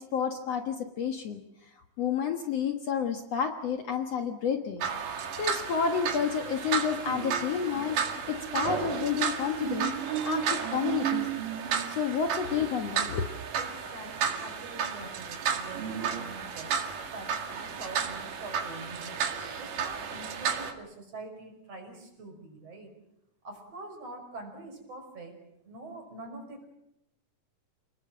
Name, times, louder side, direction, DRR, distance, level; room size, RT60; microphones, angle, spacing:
voice 1, 0.0-1.4 2.0-11.3 11.9-13.3, left 7 dB, 55° left, 5 dB, 2.2 m, -30 dB
sound 1, 4.8-20.7, right 7 dB, 75° right, 3.6 m, -32 dB
voice 2, 13.5-19.2 19.6-22.9 23.4-25.3 25.6-26.6, right 2 dB, 45° right, 4 dB, 6.5 m, -45 dB
29.0 x 20.0 x 7.6 m, 0.82 s
omnidirectional pair, 3.8 m